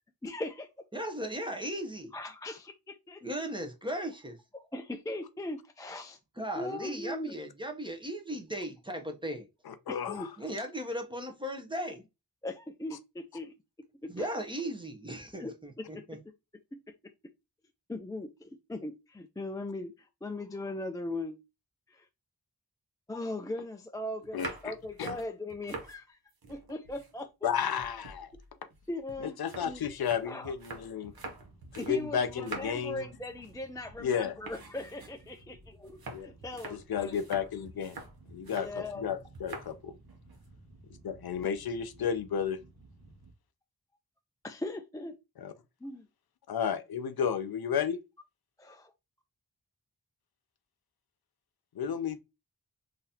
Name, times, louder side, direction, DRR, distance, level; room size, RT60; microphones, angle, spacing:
voice 1, 0.2-0.7 0.9-1.0 2.1-3.5 4.5-6.2 6.6-7.4 9.9-10.3 12.4-14.3 15.4-15.5 15.8-16.3 16.7-16.9 17.9-21.4 21.9-22.1 23.1-26.2 26.5-27.5 28.3-28.4 28.9-29.9 30.2-30.5 31.8-37.2 38.5-39.0 44.4-45.2 45.8-46.1 48.7-48.8, left 2 dB, 10° left, 0.3 m, -39 dB
voice 2, 0.9-2.1 3.2-4.4 6.4-9.5 10.4-12.0 14.1-16.2, equal, 15° right, 0.7 m, -37 dB
voice 3, 9.7-10.3 24.3-24.7 25.0-25.1 27.4-28.3 29.2-31.1 31.7-33.0 34.0-34.3 36.1-36.3 36.7-38.0 38.3-38.7 39.0-39.9 41.0-42.6 45.4-45.5 46.5-48.0 51.8-52.2, left 7 dB, 80° left, 0.5 m, -32 dB
sound 1, 24.2-26.0 26.3-27.5 27.8-32.0 32.3-32.9 33.3-33.6 33.9-34.1 34.4-38.8 39.3-39.7 40.1-40.5, right 3 dB, 75° right, 0.9 m, -45 dB
sound 2, 31.0-43.3, right 3 dB, 50° right, 1.1 m, -56 dB
3.8 x 2.7 x 2.7 m
wide cardioid pair, 70°, 37 cm